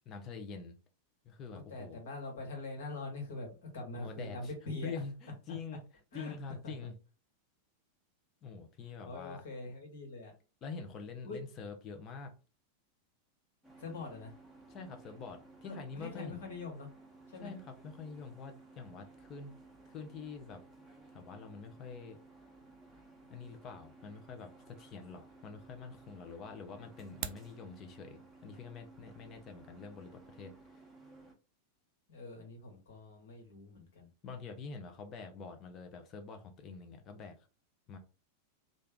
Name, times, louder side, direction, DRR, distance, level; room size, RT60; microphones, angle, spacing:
voice 1, 0.1-0.8 1.2-2.0 3.9-4.5 4.8-5.9 6.1-7.0 8.4-9.4 10.6-12.3 14.7-16.4 17.4-19.5 19.9-20.6 21.1-22.2 23.3-30.8 34.2-37.4 37.9-38.0, left 5 dB, 30° left, 0.7 m, -46 dB
voice 2, 1.5-4.9 6.1-6.3 6.6-6.7 9.0-10.3 11.2-11.4 13.8-14.3 15.6-16.9 17.3-17.5 32.1-34.1, left 2 dB, 60° left, 1.5 m, -43 dB
sound 1, 13.6-31.3, right 3 dB, 5° right, 1.1 m, -57 dB
sound 2, 27.0-27.5, right 12 dB, 45° right, 0.3 m, -41 dB
3.3 x 2.5 x 3.6 m
figure-of-eight pair, 90°, 0 cm